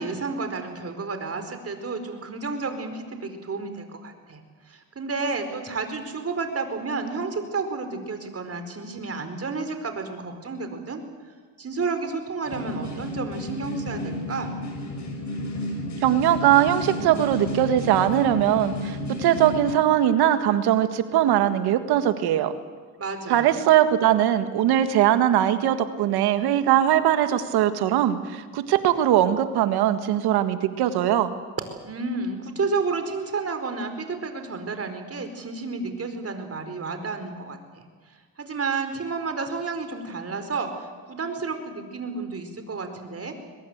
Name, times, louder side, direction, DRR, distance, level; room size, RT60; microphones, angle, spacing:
voice 1, 0.0-4.4 4.7-11.0 11.6-14.6 23.0-23.5 31.8-37.9 38.4-43.4, right 4 dB, 40° right, 7 dB, 4.6 m, -31 dB
sound 1, 12.5-19.7, left 1 dB, 50° left, 7.3 m, -32 dB
voice 2, 16.0-22.5 23.3-31.3, right 11 dB, 80° right, 10 dB, 1.8 m, -21 dB
22.5 x 21.5 x 8.1 m, 1.5 s
supercardioid pair, 75°, 38 cm